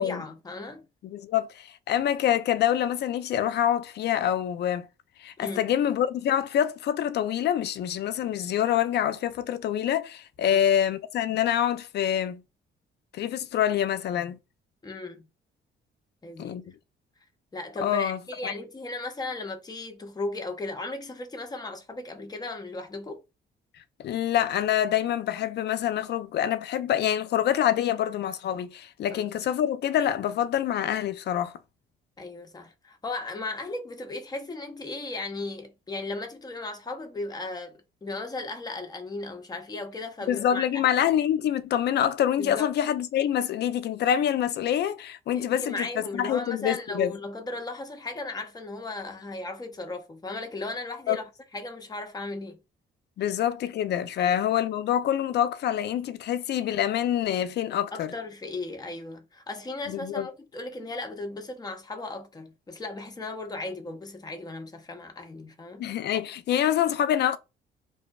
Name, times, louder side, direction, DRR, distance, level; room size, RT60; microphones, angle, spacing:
voice 1, 0.0-0.9 5.4-5.6 10.4-10.6 14.8-15.3 16.2-16.7 17.5-23.2 29.1-29.3 32.2-41.0 42.4-42.7 45.3-51.2 51.5-52.6 54.2-54.4 57.9-65.8, left 2 dB, 20° left, 0.6 m, -36 dB
voice 2, 1.0-4.9 5.2-12.4 13.1-14.4 16.4-16.6 17.8-18.5 24.0-31.6 40.3-47.2 51.1-51.2 53.2-58.1 59.9-60.3 65.8-67.4, left 10 dB, 60° left, 0.4 m, -26 dB
2.6 x 2.0 x 2.2 m
cardioid pair, 90°, 20 cm